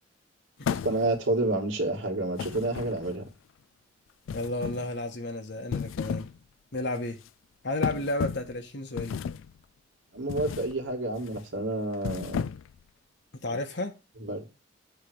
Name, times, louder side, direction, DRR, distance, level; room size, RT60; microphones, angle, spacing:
sound 1, 0.6-1.3 2.4-3.3 4.3-4.9 5.6-6.4 6.7-7.0 7.8-8.6 9.0-9.5 10.3-10.7 11.1-11.4 11.9-12.8, left 6 dB, 85° left, 0.3 m, -34 dB
voice 1, 0.7-3.2 10.1-12.5 13.5-13.6 14.2-14.5, right 2 dB, 85° right, 2.4 m, -29 dB
voice 2, 4.3-6.3 6.7-7.2 7.6-9.3 13.3-13.9, left 2 dB, 60° left, 1.3 m, -32 dB
8.3 x 3.3 x 6.4 m
head